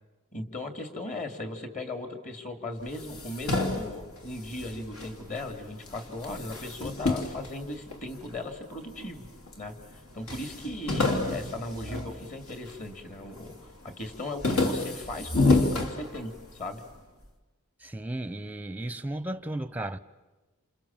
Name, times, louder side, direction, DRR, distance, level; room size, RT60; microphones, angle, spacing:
voice 1, 0.3-9.3 9.6-9.8 10.1-13.6 13.8-16.8, left 1 dB, 35° left, 2.8 m, -37 dB
sound 1, 2.9-5.5 5.8-8.4 9.0-9.6 9.9-10.0 10.3-12.9 13.3-13.7 14.0-16.6, left 3 dB, 70° left, 3.2 m, -29 dB
voice 2, 17.8-20.0, right 1 dB, 5° right, 0.8 m, -34 dB
28.5 x 28.0 x 7.4 m
head